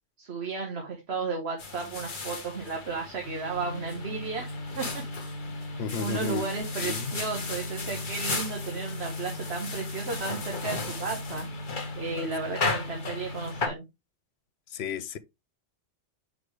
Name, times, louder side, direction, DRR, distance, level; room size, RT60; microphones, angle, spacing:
voice 1, 0.2-4.5 4.8-5.0 6.0-11.5 12.0-13.8, right 4 dB, 60° right, 1.6 m, -34 dB
sound 1, 1.6-13.7, left 4 dB, 45° left, 1.4 m, -36 dB
sound 2, 3.2-13.7, left 1 dB, 40° right, 2.4 m, -38 dB
voice 2, 5.8-6.4 6.8-7.2 14.7-15.2, left 7 dB, 65° left, 1.0 m, -33 dB
9.1 x 4.9 x 3.4 m
omnidirectional pair, 1.2 m